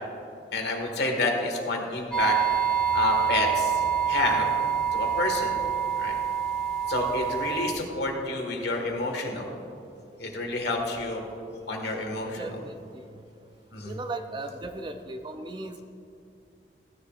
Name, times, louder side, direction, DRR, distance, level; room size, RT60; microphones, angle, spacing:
voice 1, 0.5-2.4 2.9-4.5 4.9-5.5 6.0-6.1 6.9-9.5 10.2-11.3 11.7-12.5 13.7-14.0, left 2 dB, 70° left, 2 dB, 1.6 m, -29 dB
sound 1, 2.1-7.7, right 8 dB, 5° left, 1.7 m, -26 dB
voice 2, 11.7-12.1 12.4-13.2 13.8-15.8, right 2 dB, 25° right, 7 dB, 0.5 m, -38 dB
16.0 x 10.0 x 2.4 m, 2.6 s
head